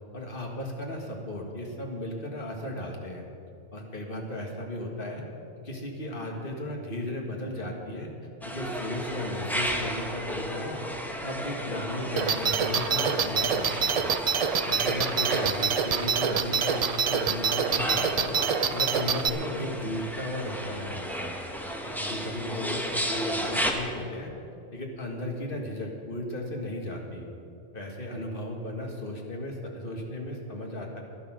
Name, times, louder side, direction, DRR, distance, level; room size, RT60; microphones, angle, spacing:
voice 1, 0.1-3.2 3.7-5.3 5.6-8.1 8.4-10.8 11.2-14.0 14.6-18.4 18.7-21.3 21.8-24.3 24.7-27.3 27.7-31.0, left 1 dB, 50° left, 0 dB, 1.9 m, -35 dB
sound 1, 8.4-23.7, equal, ahead, 0.9 m, -34 dB
sound 2, 12.2-19.3, right 6 dB, 55° right, 0.4 m, -26 dB
12.0 x 11.0 x 6.2 m, 2.5 s
omnidirectional pair, 1.2 m